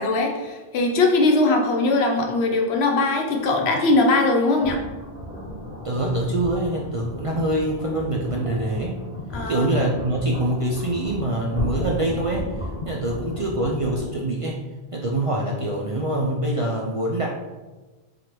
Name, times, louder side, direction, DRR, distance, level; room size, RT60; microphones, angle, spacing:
voice 1, 0.0-4.8 9.3-9.7, left 2 dB, 90° left, 2 dB, 0.9 m, -20 dB
sound 1, 4.6-14.1, left 1 dB, 65° left, 1.6 m, -34 dB
voice 2, 5.8-9.0 9.5-14.7 14.9-17.3, right 1 dB, 55° right, -2 dB, 0.4 m, -25 dB
3.9 x 3.2 x 2.9 m, 1.2 s
omnidirectional pair, 1.0 m